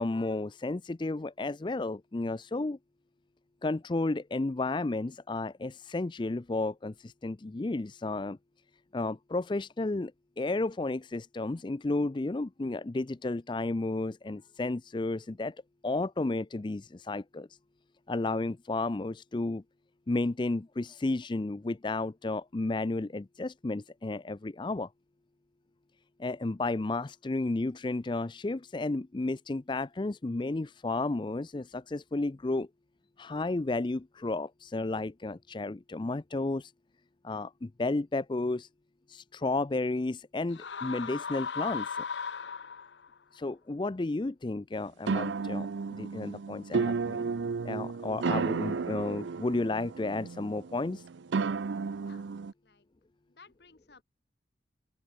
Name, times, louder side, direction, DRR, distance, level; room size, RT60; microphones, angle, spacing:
voice 1, 0.0-2.8 3.6-8.4 8.9-10.1 10.4-15.6 15.8-17.5 18.1-19.6 20.1-24.9 26.2-32.7 33.2-36.7 37.2-38.7 39.1-42.0 43.3-45.7 45.9-47.2 47.6-51.0, left 2 dB, 25° left, 0.4 m, -32 dB
sound 1, 40.5-43.1, left 6 dB, 80° left, 0.8 m, -37 dB
sound 2, 45.1-52.5, right 4 dB, 90° right, 0.5 m, -33 dB
voice 2, 53.3-54.0, left 4 dB, 65° left, 1.8 m, -58 dB
open air
head